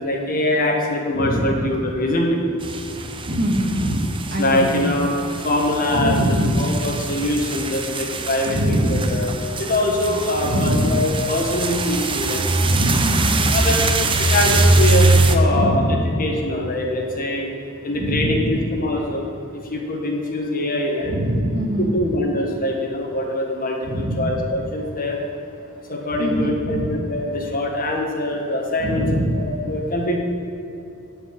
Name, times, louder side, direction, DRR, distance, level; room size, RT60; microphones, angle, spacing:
voice 1, 0.0-2.4 4.4-12.5 13.5-13.9 14.2-17.5 17.8-18.4 18.7-19.3 19.7-21.1 21.8-25.2 25.9-29.0 29.4-30.2, left 1 dB, 40° left, 1 dB, 1.6 m, -23 dB
voice 2, 1.1-1.7 3.3-4.8 5.9-6.7 8.4-9.3 10.4-11.2 12.6-13.6 15.5-16.2 17.9-18.7 21.0-22.1 23.8-24.4 26.2-27.0 28.8-29.5, equal, 45° right, 0 dB, 1.7 m, -23 dB
sound 1, 2.6-15.4, right 2 dB, 25° right, 0.7 m, -22 dB
13.0 x 5.4 x 7.6 m, 2.8 s
head